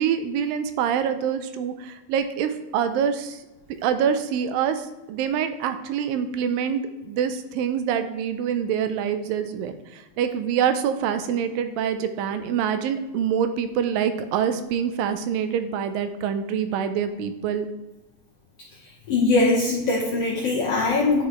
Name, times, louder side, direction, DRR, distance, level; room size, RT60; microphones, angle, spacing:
voice 1, 0.0-3.4 3.8-17.7, right 8 dB, 85° right, 9 dB, 2.3 m, -25 dB
voice 2, 19.1-21.2, left 3 dB, 65° left, -5 dB, 1.5 m, -21 dB
10.0 x 4.0 x 3.1 m, 1.1 s
omnidirectional pair, 4.0 m